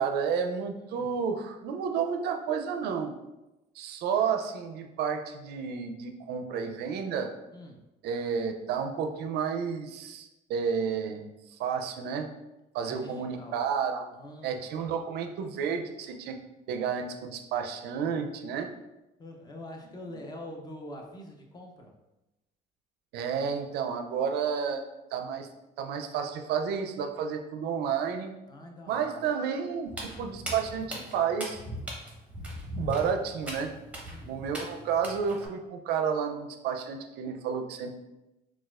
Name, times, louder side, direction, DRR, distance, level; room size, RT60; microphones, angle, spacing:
voice 1, 0.0-3.1 3.8-7.3 8.0-12.3 12.7-14.1 14.4-16.4 16.7-18.7 23.1-24.8 25.1-25.5 25.8-28.3 28.9-31.6 32.8-33.7 34.3-38.0, right 6 dB, 75° right, 5 dB, 0.4 m, -31 dB
voice 2, 7.5-7.9 12.8-13.6 14.1-14.6 19.2-21.9 28.5-29.2 34.0-34.4, left 1 dB, 25° left, 2 dB, 0.5 m, -45 dB
Walk footsteps, 29.9-35.5, equal, 10° right, 0.8 m, -39 dB
4.0 x 2.3 x 2.4 m, 0.97 s
cardioid pair, 110°, 17 cm